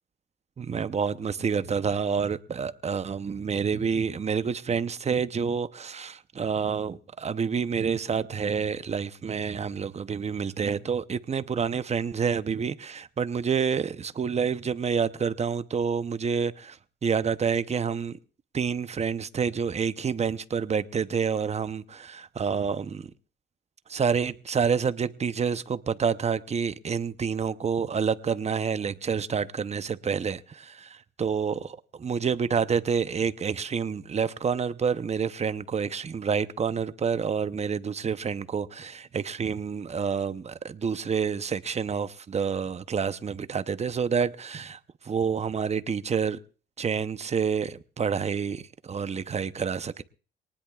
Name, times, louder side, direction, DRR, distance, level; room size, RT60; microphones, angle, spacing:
voice 1, 0.6-18.2 18.5-23.1 23.9-30.9 31.2-46.4 46.8-50.0, right 6 dB, 35° right, 0.8 m, -28 dB
23.5 x 19.0 x 2.4 m
cardioid pair, 90°, 20 cm